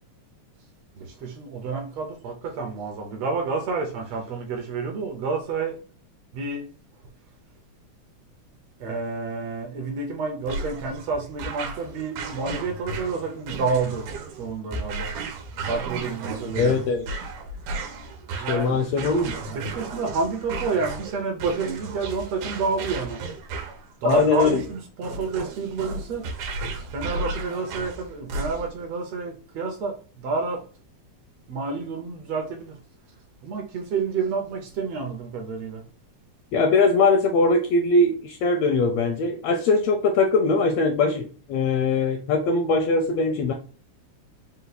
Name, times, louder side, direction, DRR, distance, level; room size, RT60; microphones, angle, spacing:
voice 1, 1.0-5.8 6.3-6.7 8.8-14.1 14.4-15.1 15.7-16.9 18.3-18.8 19.5-23.2 24.0-26.3 26.9-30.6 31.5-32.8 33.4-35.8, right 4 dB, 70° right, 1.7 m, -29 dB
sound 1, 10.5-28.8, right 3 dB, 90° right, 2.4 m, -34 dB
voice 2, 16.6-17.1 18.3-19.3 24.0-24.6 36.5-43.5, left 3 dB, 80° left, 1.5 m, -21 dB
5.3 x 2.3 x 3.9 m
omnidirectional pair, 3.4 m